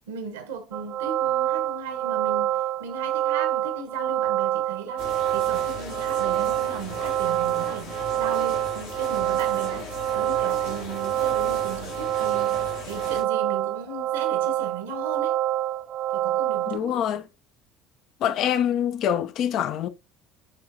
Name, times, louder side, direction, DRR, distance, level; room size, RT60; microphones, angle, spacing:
voice 1, 0.1-15.4 16.1-17.0, right 5 dB, 75° right, 1.2 m, -37 dB
sound 1, 0.7-16.8, right 13 dB, 55° right, 0.5 m, -26 dB
sound 2, 5.0-13.2, left 3 dB, 80° left, 2.5 m, -38 dB
voice 2, 16.7-17.2 18.2-19.9, left 9 dB, 55° left, 0.6 m, -25 dB
9.5 x 3.7 x 2.7 m
hypercardioid pair, 60°, 0 cm